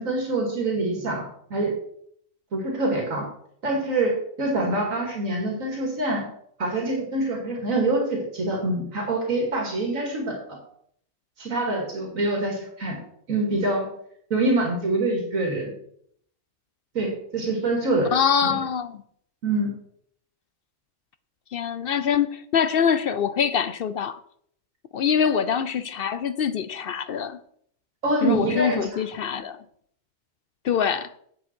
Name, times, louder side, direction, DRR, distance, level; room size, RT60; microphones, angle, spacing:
voice 1, 0.0-1.7 2.5-3.3 3.6-6.2 6.6-10.6 11.4-13.0 13.3-13.9 14.3-15.7 16.9-18.1 18.4-18.6 19.4-19.7 28.0-29.0, right 2 dB, 85° right, 2.7 m, -25 dB
voice 2, 18.1-18.9 21.5-24.2 24.9-27.4 28.2-29.6 30.6-31.1, left 7 dB, 60° left, 0.6 m, -24 dB
9.0 x 8.1 x 4.4 m
omnidirectional pair, 1.4 m